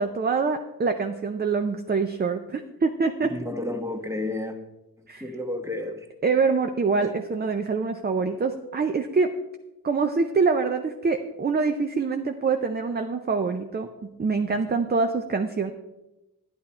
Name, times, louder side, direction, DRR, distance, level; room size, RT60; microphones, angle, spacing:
voice 1, 0.0-3.3 5.1-5.2 6.2-9.3 9.8-15.7, right 4 dB, 25° right, 6 dB, 0.5 m, -25 dB
voice 2, 3.3-4.6 5.0-6.1 7.0-7.1, left 2 dB, 5° right, 5 dB, 1.2 m, -31 dB
11.0 x 10.5 x 4.3 m, 1.0 s
wide cardioid pair, 125°, 40 cm